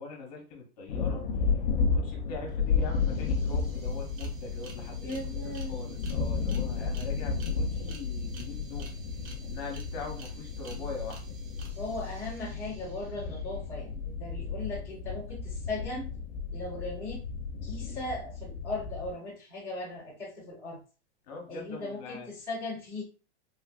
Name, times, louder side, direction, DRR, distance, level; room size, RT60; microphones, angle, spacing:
voice 1, 0.0-1.5 1.9-9.0 9.4-11.4 21.3-22.3, left 3 dB, 35° left, 1 dB, 0.8 m, -42 dB
sound 1, 0.9-19.1, left 5 dB, 60° left, 0.5 m, -33 dB
sound 2, 2.5-2.6 2.8-13.6, right 4 dB, 55° right, 0.8 m, -53 dB
voice 2, 5.0-6.0 11.8-16.1 16.5-17.2 17.6-20.8 21.5-23.0, left 2 dB, 5° right, -12 dB, 0.4 m, -38 dB
3.2 x 2.5 x 2.2 m, 0.34 s
supercardioid pair, 180°, 34 cm